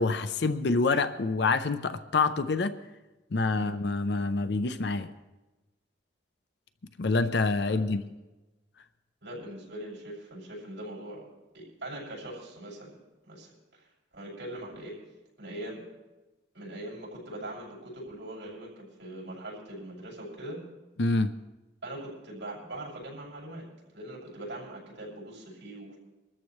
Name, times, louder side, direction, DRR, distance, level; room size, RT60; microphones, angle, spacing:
voice 1, 0.0-2.8 3.3-5.1 7.0-8.0 21.0-21.4, left 3 dB, 65° left, 0.6 m, -26 dB
voice 2, 9.2-11.3 11.5-13.0 13.2-13.9 14.1-14.9 15.4-15.9 16.5-20.6 21.8-23.7 23.9-26.0, right 1 dB, 70° right, 6.5 m, -41 dB
23.0 x 13.5 x 3.2 m
head